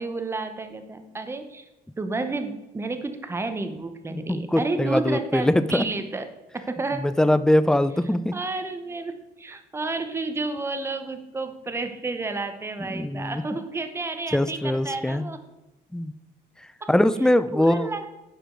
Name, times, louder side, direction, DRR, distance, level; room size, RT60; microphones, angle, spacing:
voice 1, 0.0-1.6 2.0-6.2 6.5-7.0 8.3-15.4 16.8-16.9 17.5-18.1, right 3 dB, 15° right, 8 dB, 0.8 m, -31 dB
voice 2, 4.1-5.8 6.9-8.4 12.8-13.4 14.3-15.3 15.9-16.1 16.9-17.9, left 1 dB, 5° left, 13 dB, 0.4 m, -22 dB
11.5 x 5.0 x 3.8 m, 0.98 s
cardioid pair, 110°, 17 cm